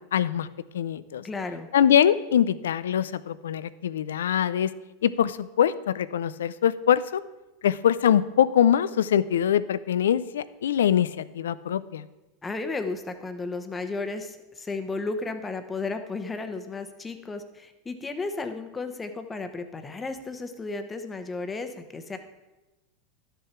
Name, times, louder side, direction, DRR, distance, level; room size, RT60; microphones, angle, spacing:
voice 1, 0.1-0.5 0.7-1.2 1.7-4.7 5.0-7.2 7.6-12.1, left 9 dB, 85° left, 17 dB, 0.4 m, -23 dB
voice 2, 1.2-1.7 12.4-22.2, left 3 dB, 15° left, 8 dB, 1.0 m, -33 dB
11.5 x 6.8 x 4.4 m, 1.1 s
hypercardioid pair, 105°, 0 cm